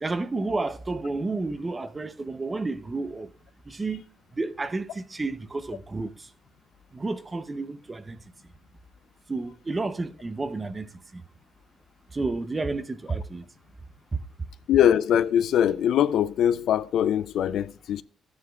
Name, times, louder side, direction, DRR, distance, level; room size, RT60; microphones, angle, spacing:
voice 1, 0.0-3.3 3.7-4.0 4.3-6.1 6.9-8.2 9.3-11.2 12.1-13.4 14.1-14.2, right 3 dB, 25° right, 0.6 m, -31 dB
voice 2, 14.7-18.0, left 10 dB, 75° left, 0.4 m, -22 dB
13.5 x 9.5 x 2.3 m
cardioid pair, 90°, 0 cm